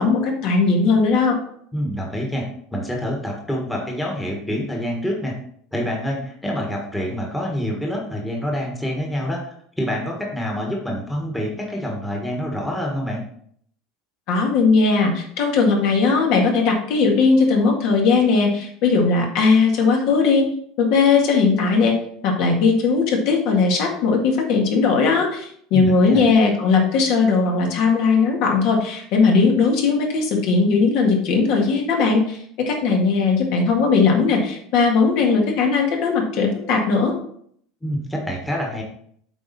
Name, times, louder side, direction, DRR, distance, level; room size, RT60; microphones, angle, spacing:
voice 1, 0.0-1.4 14.3-20.5 20.8-22.0 22.2-37.1, left 4 dB, 60° left, 1 dB, 1.9 m, -18 dB
voice 2, 1.7-5.4 5.7-9.5 9.8-13.2 25.7-26.3 37.8-38.8, equal, 5° left, -1 dB, 1.4 m, -26 dB
8.1 x 4.3 x 4.2 m, 0.65 s
supercardioid pair, 145°, 0 cm